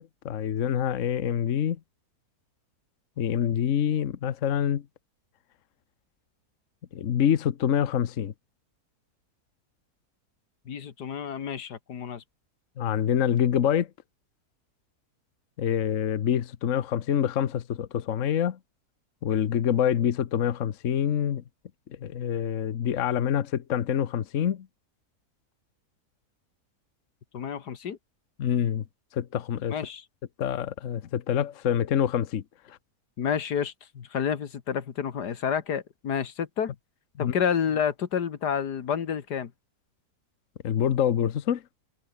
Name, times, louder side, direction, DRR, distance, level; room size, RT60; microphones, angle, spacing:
voice 1, 0.0-1.8 3.2-4.8 6.9-8.3 12.8-13.9 15.6-18.6 19.2-21.4 22.0-24.7 28.4-28.8 29.1-29.8 30.4-32.4 37.2-37.3 40.6-41.6, left 9 dB, 55° left, 1.2 m, -26 dB
voice 2, 10.7-12.2 27.3-28.0 29.7-30.0 33.2-36.7 37.2-39.5, left 7 dB, 80° left, 2.1 m, -29 dB
omnidirectional pair, 1.7 m